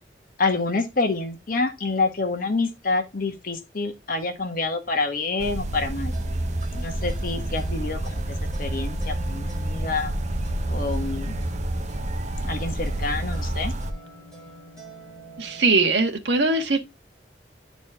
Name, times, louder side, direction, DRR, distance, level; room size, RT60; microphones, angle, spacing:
voice 1, 0.4-6.1 6.7-8.2 8.6-10.1 10.7-11.4 12.5-13.7, left 3 dB, 50° left, 1.2 m, -27 dB
sound 1, 5.4-13.9, right 1 dB, 40° right, 0.9 m, -28 dB
sound 2, 6.1-15.7, equal, 5° left, 5.2 m, -45 dB
voice 2, 15.4-16.8, right 3 dB, 75° right, 1.4 m, -21 dB
10.5 x 4.2 x 3.5 m
head